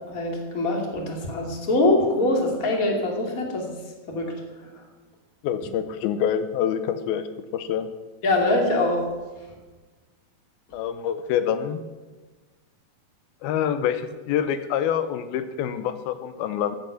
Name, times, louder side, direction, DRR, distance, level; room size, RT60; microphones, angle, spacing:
voice 1, 0.1-3.7 4.1-4.3 8.2-9.0, left 2 dB, 25° left, 1 dB, 2.5 m, -23 dB
voice 2, 5.4-7.3 7.5-7.9 10.7-11.8 13.4-16.8, left 9 dB, 85° left, 11 dB, 2.7 m, -26 dB
14.0 x 10.5 x 6.9 m, 1.3 s
omnidirectional pair, 4.3 m